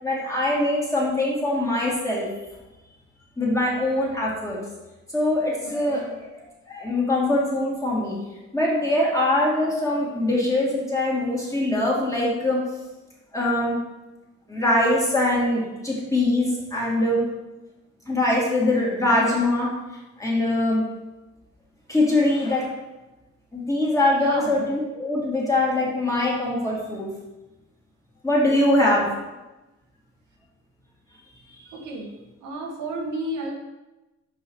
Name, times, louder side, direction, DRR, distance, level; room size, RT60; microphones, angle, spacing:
voice 1, 0.0-2.3 3.4-4.6 5.1-6.3 6.7-8.2 8.5-12.6 13.3-13.8 14.5-17.2 18.1-19.7 20.2-20.8 21.9-22.7 23.5-27.1 28.2-29.1, left 1 dB, 10° left, -5 dB, 2.4 m, -22 dB
voice 2, 5.6-6.2 24.2-24.7 28.8-29.0 31.7-32.1 32.4-33.5, right 1 dB, 75° right, 0 dB, 1.4 m, -32 dB
5.6 x 4.7 x 4.7 m, 1.1 s
cardioid pair, 90°, 30 cm